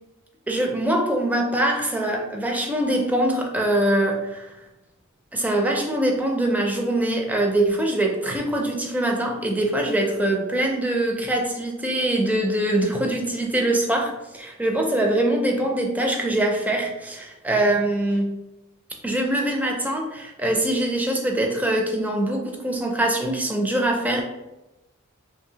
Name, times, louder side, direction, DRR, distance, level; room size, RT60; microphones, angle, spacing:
voice 1, 0.5-4.5 5.3-18.4 19.0-24.2, right 1 dB, 10° right, 1 dB, 0.4 m, -23 dB
2.7 x 2.6 x 2.8 m, 0.97 s
head